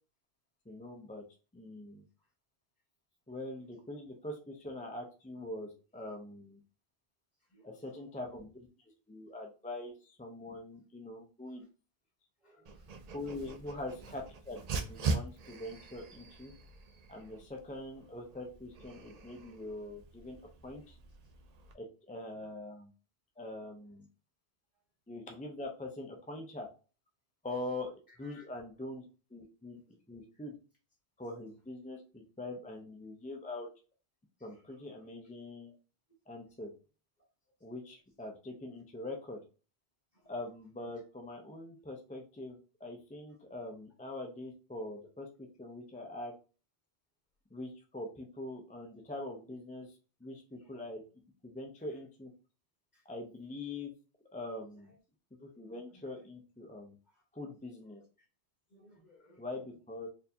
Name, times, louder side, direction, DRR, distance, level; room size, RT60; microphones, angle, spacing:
voice 1, 0.7-1.2 1.5-2.0 3.3-6.6 7.6-8.7 9.1-11.7 13.1-16.5 17.1-20.4 20.6-21.0 21.7-22.9 23.4-24.1 25.1-26.7 27.4-27.9 28.2-29.0 29.3-29.8 30.1-30.6 31.2-33.7 34.4-35.8 36.3-36.7 37.6-39.4 40.3-45.3 45.6-46.3 47.5-51.0 51.4-52.3 53.1-53.9 54.3-54.9 55.4-57.0 57.3-58.0 59.4-60.1, left 2 dB, 15° left, 2 dB, 0.3 m, -43 dB
voice 2, 7.4-8.2 11.5-11.7 12.4-12.9 13.6-13.9 20.8-20.9 21.2-21.3 22.3-22.5 24.7-24.8 28.1-28.5 34.4-35.1 36.4-36.6 37.2-37.5 40.1-40.4 40.8-40.9 43.3-43.5 50.5-50.9 51.8-52.0 52.9-53.1 54.8-55.0 55.5-56.2 57.0-57.2 57.8-58.3 58.7-59.6, equal, 45° left, -2 dB, 1.9 m, -65 dB
Dog, 12.6-21.7, right 3 dB, 55° right, 0.5 m, -42 dB
4.3 x 2.6 x 2.7 m, 0.35 s
omnidirectional pair, 1.1 m